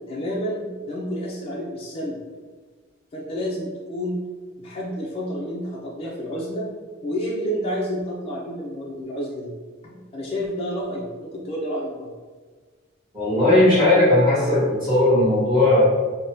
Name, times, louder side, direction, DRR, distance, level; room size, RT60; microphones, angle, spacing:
voice 1, 0.1-2.2 3.1-4.2 4.6-6.7 7.0-9.6 9.8-12.1, equal, 30° left, -4 dB, 0.4 m, -29 dB
voice 2, 13.1-15.8, left 1 dB, 25° right, -15 dB, 1.2 m, -17 dB
3.4 x 2.1 x 2.6 m, 1.4 s
head